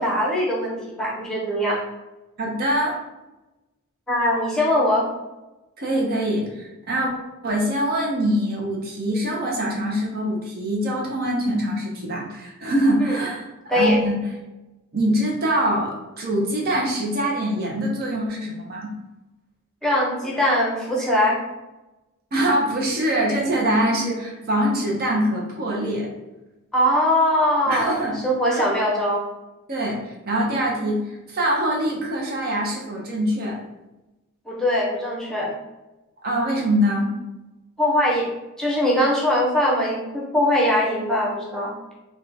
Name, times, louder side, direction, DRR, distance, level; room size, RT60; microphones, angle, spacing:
voice 1, 0.0-1.8 4.1-5.1 13.0-13.2 13.7-14.0 19.8-21.4 26.7-29.2 34.4-35.5 37.8-38.3 38.6-41.8, left 1 dB, 5° left, -4 dB, 0.7 m, -21 dB
voice 2, 2.4-3.0 5.8-7.1 7.4-14.2 14.9-18.9 22.3-26.1 27.7-28.2 28.5-28.6 29.7-33.6 36.2-37.1, equal, 45° right, -1 dB, 0.7 m, -24 dB
3.5 x 2.2 x 4.1 m, 1.0 s
head